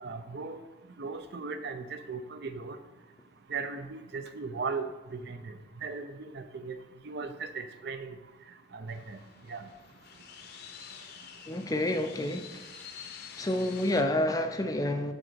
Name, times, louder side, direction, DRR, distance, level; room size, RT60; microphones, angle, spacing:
voice 1, 0.0-0.6 1.0-2.8 3.5-5.6 5.8-6.1 6.3-6.8 7.0-8.1 8.7-9.2 9.5-9.6, right 4 dB, 55° right, 0.5 m, -37 dB
sound 1, 8.9-14.0, left 7 dB, 50° left, 0.7 m, -48 dB
voice 2, 11.5-12.5 13.4-15.1, left 1 dB, 20° left, 0.4 m, -29 dB
9.9 x 3.8 x 4.5 m
head